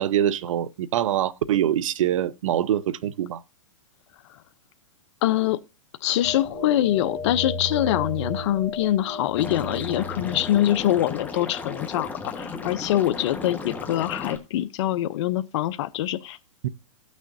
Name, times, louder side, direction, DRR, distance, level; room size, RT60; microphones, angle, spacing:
voice 1, 0.0-3.4 16.6-16.7, right 11 dB, 70° right, 0.7 m, -24 dB
voice 2, 5.2-5.6 6.0-16.4, left 13 dB, 55° left, 0.6 m, -24 dB
sound 1, 6.2-11.2, left 3 dB, 5° right, 2.2 m, -34 dB
Liquid, 9.4-14.4, left 4 dB, 10° left, 1.3 m, -35 dB
17.0 x 6.3 x 2.6 m
hypercardioid pair, 130°, 17 cm